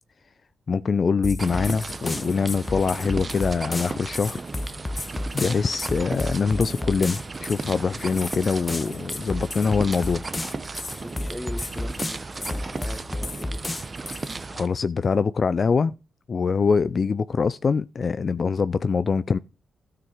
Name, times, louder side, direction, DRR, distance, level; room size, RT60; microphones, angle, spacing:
voice 1, 0.7-4.4 5.3-10.2 14.1-15.9 16.3-19.4, left 5 dB, 50° left, 0.4 m, -24 dB
sound 1, 1.2-14.4, left 2 dB, 25° left, 1.2 m, -32 dB
sound 2, 1.4-14.7, right 3 dB, 40° right, 1.1 m, -35 dB
voice 2, 11.0-13.7, left 1 dB, 5° left, 1.9 m, -39 dB
13.0 x 6.1 x 4.5 m
supercardioid pair, 45°, 0 cm